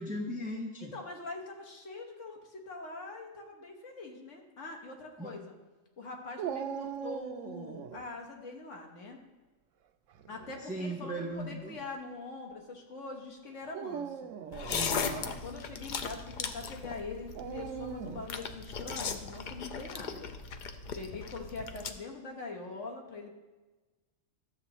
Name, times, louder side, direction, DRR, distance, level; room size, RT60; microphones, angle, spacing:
voice 1, 0.0-0.9 5.2-5.3 10.7-11.8 14.7-15.3, right 1 dB, 10° right, -1 dB, 0.7 m, -37 dB
voice 2, 0.8-5.5 6.0-9.2 10.3-14.3 15.1-20.3 20.9-23.3, left 3 dB, 75° left, 1 dB, 1.6 m, -43 dB
Dog, 6.4-8.0 10.1-10.6 11.4-11.5 13.6-14.9 17.3-18.3, right 8 dB, 90° right, 1.0 m, -39 dB
sound 1, 14.5-21.9, left 5 dB, 55° left, 0.6 m, -38 dB
13.0 x 7.4 x 3.0 m, 1.2 s
omnidirectional pair, 1.3 m